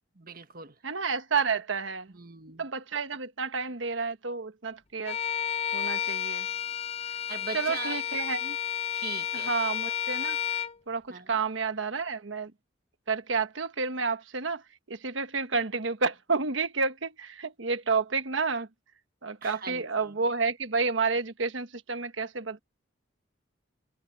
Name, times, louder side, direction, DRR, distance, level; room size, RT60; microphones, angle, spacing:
voice 1, 0.1-0.8 2.1-2.6 7.3-8.0 8.9-9.5 11.1-11.4 19.4-20.2, right 4 dB, 50° right, 1.5 m, -41 dB
voice 2, 0.8-2.1 2.6-5.2 5.7-6.5 7.5-8.6 9.4-10.4 10.9-12.5 13.1-18.7 19.2-22.6, right 4 dB, 75° right, 1.3 m, -30 dB
Bowed string instrument, 5.1-10.8, left 9 dB, 30° left, 0.7 m, -31 dB
head